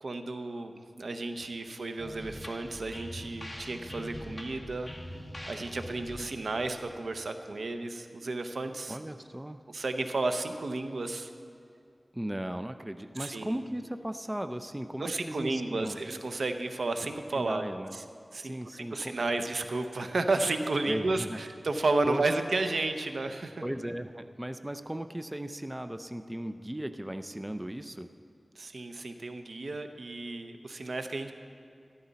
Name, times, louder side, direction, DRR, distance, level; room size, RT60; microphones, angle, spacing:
voice 1, 0.0-4.9 5.5-9.0 9.7-11.3 13.2-13.6 15.0-17.6 17.9-18.0 18.3-23.6 28.6-31.3, right 2 dB, 85° right, 7 dB, 0.7 m, -32 dB
sound 1, 2.0-7.6, left 1 dB, 15° left, 2.1 m, -44 dB
voice 2, 8.9-9.6 12.1-16.0 17.3-18.0 18.4-19.2 20.8-21.4 22.0-22.2 23.6-28.1, right 1 dB, 15° right, 9 dB, 0.5 m, -36 dB
13.5 x 12.5 x 4.1 m, 2.4 s
wide cardioid pair, 70°, 0 cm